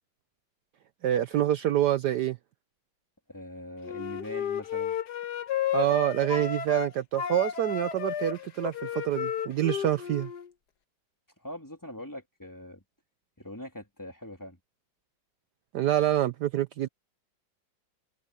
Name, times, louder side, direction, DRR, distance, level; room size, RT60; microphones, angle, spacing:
voice 1, 1.0-2.4 5.7-10.3 15.7-16.9, right 12 dB, 70° right, 1.2 m, -26 dB
voice 2, 3.3-5.0 11.4-12.8 13.4-14.6, left 1 dB, 10° left, 3.2 m, -42 dB
Wind instrument woodwind instrument, 3.8-6.9 7.2-10.5, left 9 dB, 60° left, 1.5 m, -32 dB
omnidirectional pair, 2.1 m